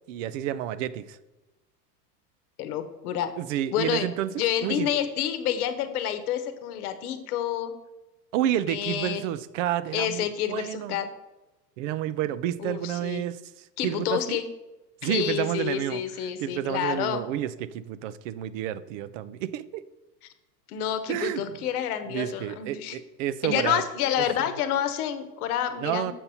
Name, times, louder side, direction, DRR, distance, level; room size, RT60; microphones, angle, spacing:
voice 1, 0.1-1.2 3.4-4.3 4.6-4.9 8.3-11.0 11.8-13.4 13.8-14.4 15.0-16.0 16.4-19.8 21.1-21.6 22.1-23.8 25.8-26.1, right 12 dB, 50° right, 16 dB, 0.5 m, -30 dB
voice 2, 2.6-3.3 3.7-4.1 4.4-7.7 8.7-9.2 9.9-11.1 12.6-13.2 13.8-14.4 15.0-17.2 20.7-23.0 23.4-26.1, left 10 dB, 65° left, 10 dB, 1.0 m, -28 dB
7.3 x 5.5 x 4.1 m, 1.0 s
hypercardioid pair, 110°, 49 cm